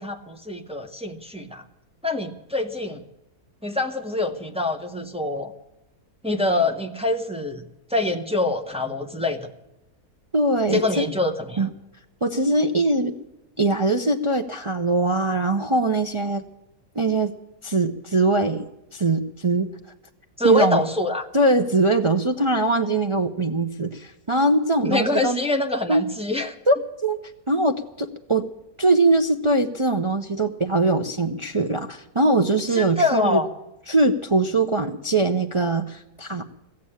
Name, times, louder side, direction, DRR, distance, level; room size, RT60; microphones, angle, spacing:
voice 1, 0.0-1.6 2.0-3.0 3.6-5.5 6.2-7.6 7.9-9.5 10.7-11.7 20.4-21.3 24.8-26.5 32.7-33.5, left 2 dB, 5° right, 3 dB, 0.9 m, -25 dB
voice 2, 10.3-11.1 11.6-11.7 12.2-13.2 13.6-16.4 17.0-17.3 17.6-18.6 18.9-19.7 20.4-20.8 21.3-25.4 25.9-26.0 26.7-26.8 27.0-27.2 27.5-28.4 28.8-33.4 33.9-36.4, right 2 dB, 40° right, 4 dB, 0.4 m, -21 dB
16.0 x 7.7 x 10.0 m, 0.92 s
omnidirectional pair, 1.7 m